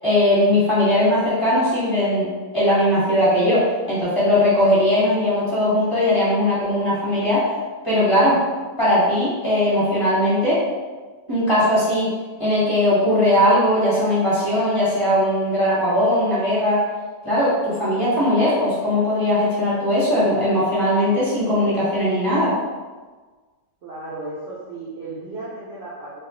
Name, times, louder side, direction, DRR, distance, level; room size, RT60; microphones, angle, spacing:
voice 1, 0.0-2.3 2.5-7.4 7.8-8.4 8.8-10.6 11.3-12.1 12.4-16.8 17.2-22.5, left 1 dB, 25° left, -11 dB, 0.9 m, -19 dB
voice 2, 23.8-26.2, right 2 dB, 60° right, -7 dB, 0.7 m, -34 dB
2.4 x 2.3 x 3.7 m, 1.4 s
omnidirectional pair, 1.5 m